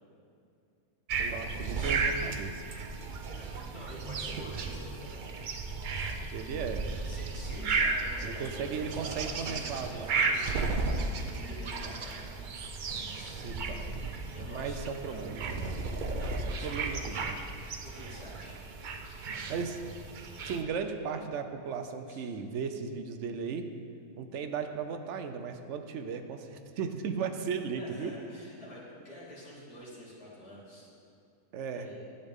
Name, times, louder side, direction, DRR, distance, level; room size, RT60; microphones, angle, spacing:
sound 1, 1.1-20.6, right 3 dB, 85° right, 0.4 m, -34 dB
voice 1, 1.2-2.7 6.3-6.8 8.2-10.5 13.4-13.9 14.5-15.8 16.5-17.4 19.5-19.8 20.5-23.7 24.2-28.1 31.5-31.9, right 6 dB, 65° right, 7 dB, 0.8 m, -36 dB
voice 2, 3.3-5.4 7.0-11.0 11.2-12.5 13.1-13.4 14.3-15.3 16.2-17.2 17.8-18.6 22.1-22.2 27.8-30.9 31.7-32.0, left 1 dB, 85° left, -8 dB, 3.0 m, -48 dB
11.0 x 8.1 x 3.6 m, 2.4 s
omnidirectional pair, 1.6 m